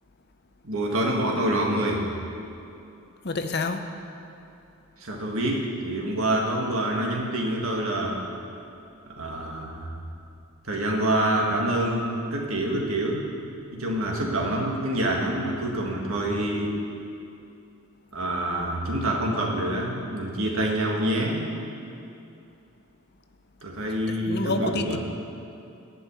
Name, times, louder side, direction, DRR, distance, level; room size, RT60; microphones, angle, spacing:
voice 1, 0.6-2.1 5.0-8.2 9.2-9.9 10.7-13.3 13.7-16.8 18.1-21.4 23.6-25.0, right 1 dB, 70° right, -1 dB, 1.6 m, -26 dB
voice 2, 3.2-3.8 24.1-25.0, left 3 dB, 45° left, 7 dB, 0.6 m, -28 dB
11.0 x 5.6 x 8.3 m, 2.7 s
head